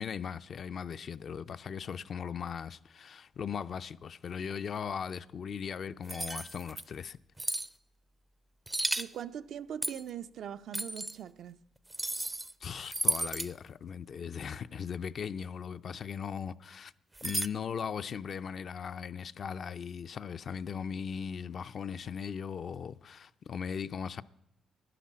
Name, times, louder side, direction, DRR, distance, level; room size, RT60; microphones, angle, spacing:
voice 1, 0.0-7.2 12.6-16.9 17.2-24.2, left 7 dB, 55° left, 0.4 m, -38 dB
sound 1, 6.1-6.8 7.4-7.7 8.7-9.1 9.8-10.1 10.7-11.1 11.9-12.5 12.8-13.5 17.2-17.5, right 2 dB, 15° right, 0.4 m, -33 dB
voice 2, 9.0-11.6, right 9 dB, 70° right, 0.4 m, -41 dB
11.0 x 10.0 x 7.4 m
cardioid pair, 90°, 0 cm